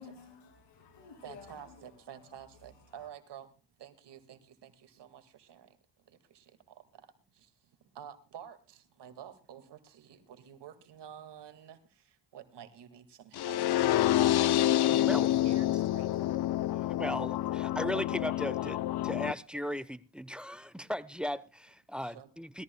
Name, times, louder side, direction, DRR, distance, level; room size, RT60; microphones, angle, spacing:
voice 1, 0.0-2.3 2.8-3.1, left 5 dB, 80° left, 2.7 m, -53 dB
voice 2, 1.2-3.5 3.8-5.7 6.3-6.4 8.0-11.8 12.3-14.2 14.9-16.3 22.0-22.3, right 9 dB, 75° right, 2.1 m, -50 dB
sound 1, 13.4-19.3, left 13 dB, 65° left, 0.6 m, -28 dB
voice 3, 17.0-22.6, equal, ahead, 0.9 m, -37 dB
21.0 x 14.0 x 2.3 m
supercardioid pair, 60°, 42 cm